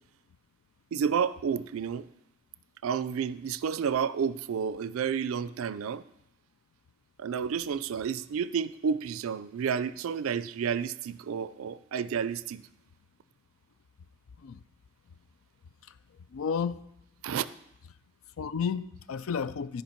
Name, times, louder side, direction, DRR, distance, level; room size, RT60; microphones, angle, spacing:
voice 1, 0.9-2.0 2.8-6.0 7.2-12.6 17.2-17.5, right 7 dB, 75° right, 0.4 m, -30 dB
voice 2, 16.3-16.8 18.4-19.8, left 6 dB, 75° left, 0.4 m, -32 dB
13.0 x 5.1 x 4.4 m
head